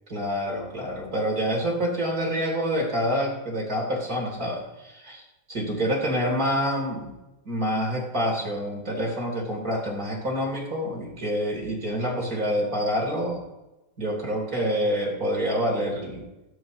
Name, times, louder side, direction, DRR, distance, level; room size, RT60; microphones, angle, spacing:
voice 1, 0.1-5.2 5.5-7.1 7.4-13.4 14.0-16.2, equal, 20° right, -2 dB, 3.4 m, -27 dB
15.0 x 13.5 x 3.1 m, 1.0 s
omnidirectional pair, 4.8 m